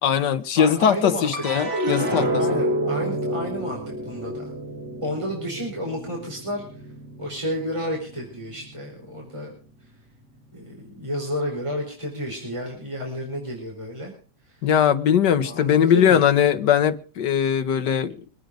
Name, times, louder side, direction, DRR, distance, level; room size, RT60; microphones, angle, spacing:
voice 1, 0.0-2.6 14.6-18.2, left 9 dB, 85° left, 1.8 m, -20 dB
voice 2, 0.5-1.3 2.4-4.5 5.0-6.6 7.2-9.5 10.5-14.1 14.5-14.6 15.4-16.2, equal, 15° right, 4.6 m, -31 dB
sound 1, 1.3-7.8 8.2-8.9, right 1 dB, 75° right, 3.1 m, -28 dB
24.5 x 9.4 x 5.0 m
omnidirectional pair, 1.8 m